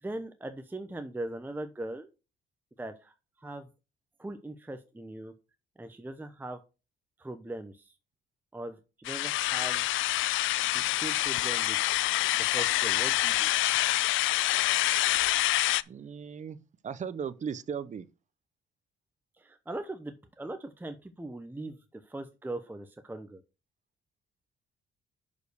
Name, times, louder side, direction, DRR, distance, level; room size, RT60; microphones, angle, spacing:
voice 1, 0.0-2.1 2.8-3.7 4.2-5.3 5.8-6.6 7.2-7.9 8.5-9.8 10.7-11.8 12.3-13.5 19.4-23.4, right 2 dB, 10° right, 0.9 m, -40 dB
sound 1, 9.0-15.8, left 16 dB, 80° left, 0.4 m, -26 dB
voice 2, 15.9-16.6 16.8-18.1, right 7 dB, 40° right, 0.7 m, -36 dB
6.3 x 5.3 x 6.5 m
cardioid pair, 90°, 20 cm